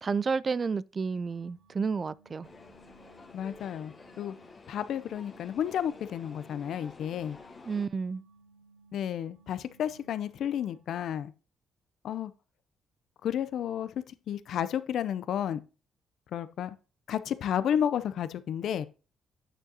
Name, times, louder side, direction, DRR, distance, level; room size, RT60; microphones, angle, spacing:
voice 1, 0.0-2.5 7.7-8.2, right 5 dB, 35° right, 0.3 m, -31 dB
cello himself, 1.2-10.9, right 3 dB, 70° right, 2.3 m, -62 dB
sound 1, 2.4-7.9, left 3 dB, 35° left, 1.4 m, -50 dB
voice 2, 3.3-4.3 4.7-7.4 8.9-11.3 12.0-12.3 13.2-15.6 16.3-16.8 17.1-18.9, left 9 dB, 70° left, 0.5 m, -32 dB
9.1 x 6.4 x 2.8 m
cardioid pair, 90°, 0 cm